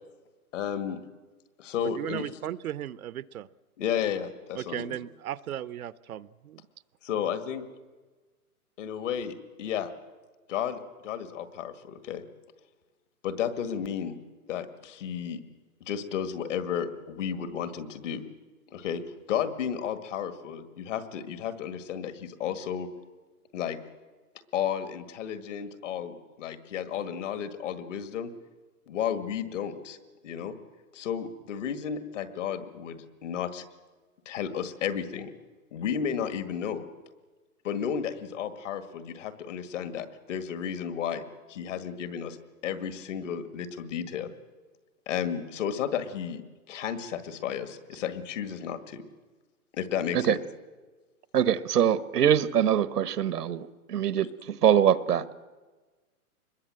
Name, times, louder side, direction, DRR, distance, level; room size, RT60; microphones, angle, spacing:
voice 1, 0.5-1.0 1.6-2.4 3.8-5.0 7.0-7.7 8.8-9.9 10.5-12.2 13.2-14.2 14.5-15.4 15.8-18.2 18.7-19.0 19.3-22.9 23.5-23.8 24.5-28.3 28.9-30.0 30.2-30.5 30.9-33.6 34.3-35.3 35.7-36.8 37.6-42.4 42.6-44.3 45.1-46.4 46.7-49.0 49.7-50.4, left 8 dB, 55° left, 9 dB, 2.1 m, -33 dB
voice 2, 1.8-3.5 4.6-6.6, right 11 dB, 70° right, 17 dB, 0.8 m, -36 dB
voice 3, 51.3-54.3 54.6-55.3, right 9 dB, 90° right, 14 dB, 1.3 m, -23 dB
25.0 x 21.5 x 7.8 m, 1.3 s
hypercardioid pair, 160°, 45 cm